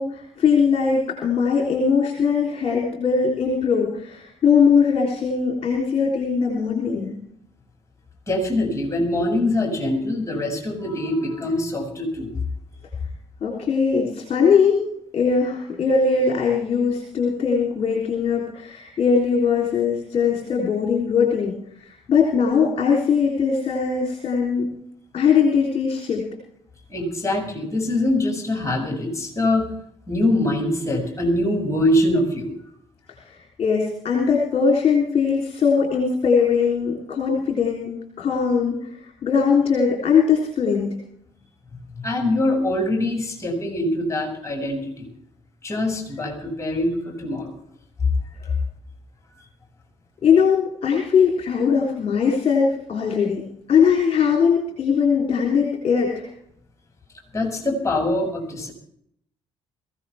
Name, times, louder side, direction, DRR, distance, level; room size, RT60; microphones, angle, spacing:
voice 1, 0.0-7.2 13.4-14.8 15.1-24.7 25.1-26.2 33.2-41.0 48.4-48.5 50.2-53.4 53.7-56.3, left 6 dB, 40° left, -1 dB, 3.6 m, -20 dB
voice 2, 8.3-12.3 26.9-29.7 30.1-32.5 42.0-45.1 45.6-47.5 57.3-58.7, left 1 dB, 20° left, 2 dB, 7.0 m, -23 dB
22.5 x 16.0 x 3.5 m, 0.70 s
figure-of-eight pair, 45°, 16 cm